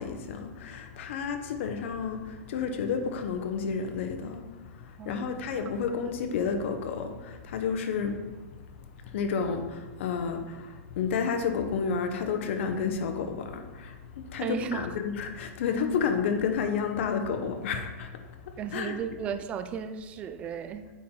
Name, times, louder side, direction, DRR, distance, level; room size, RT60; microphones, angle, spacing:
voice 1, 0.0-18.9, left 6 dB, 55° left, 6 dB, 0.9 m, -31 dB
voice 2, 5.0-5.4 14.4-14.9 18.6-20.9, right 7 dB, 15° right, 9 dB, 0.3 m, -35 dB
8.4 x 4.4 x 3.8 m, 1.3 s
supercardioid pair, 165°, 8 cm